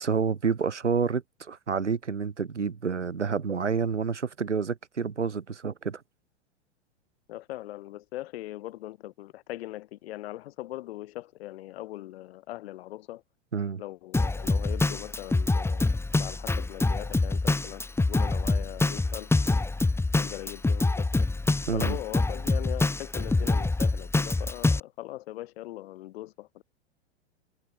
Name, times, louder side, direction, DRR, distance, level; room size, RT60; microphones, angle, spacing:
voice 1, 0.0-6.0 13.5-13.8 21.7-22.0, right 5 dB, 85° right, 2.9 m, -29 dB
voice 2, 7.3-13.2 13.8-15.9 16.1-19.6 20.2-21.3 21.7-26.6, left 16 dB, 60° left, 7.9 m, -40 dB
Drum kit, 14.1-24.8, left 3 dB, 5° left, 2.0 m, -26 dB
hypercardioid pair, 100°, 34 cm